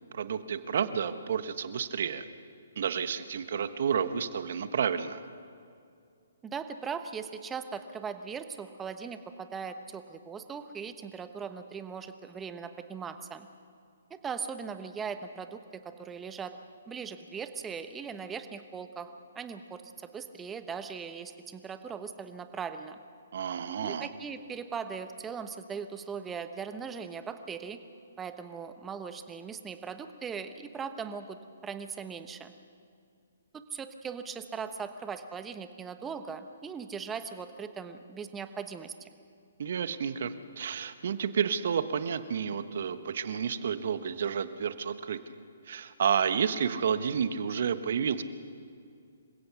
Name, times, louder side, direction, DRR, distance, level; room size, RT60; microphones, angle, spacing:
voice 1, 0.1-2.2 2.8-5.2 23.3-24.1 39.6-45.2 45.7-48.2, right 7 dB, 60° right, 12 dB, 1.1 m, -30 dB
voice 2, 6.4-13.5 14.1-16.5 16.9-19.1 19.3-23.0 23.8-27.8 28.2-31.4 31.6-32.5 33.5-39.1, right 6 dB, 15° right, 9 dB, 1.1 m, -39 dB
27.0 x 16.0 x 6.0 m, 2.3 s
figure-of-eight pair, 135°, 0 cm